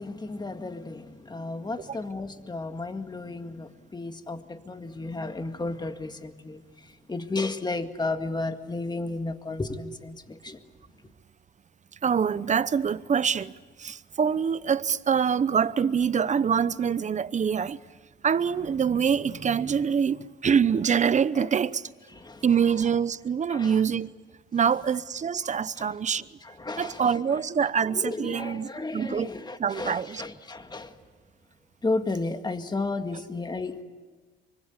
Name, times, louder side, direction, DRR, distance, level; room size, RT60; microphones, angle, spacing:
voice 1, 0.0-6.6 7.1-10.6 21.4-21.5 22.2-22.4 23.5-23.8 25.8-25.9 26.4-27.0 27.8-30.9 31.8-33.8, left 3 dB, 20° left, 2.0 m, -33 dB
voice 2, 12.0-13.5 13.8-17.8 18.2-21.8 22.4-24.1 24.5-26.2 26.8-29.3 29.6-30.2, right 7 dB, 35° right, 0.8 m, -25 dB
25.0 x 24.0 x 8.4 m
cardioid pair, 90°, 20 cm